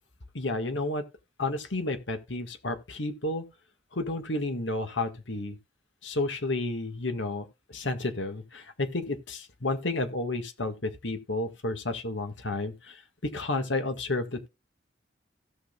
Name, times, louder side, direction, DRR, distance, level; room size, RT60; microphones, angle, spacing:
voice 1, 0.3-1.0 1.4-3.5 3.9-5.6 6.0-7.5 7.7-13.0 13.3-14.5, left 2 dB, 85° left, 1.7 m, -31 dB
16.5 x 6.3 x 2.3 m
head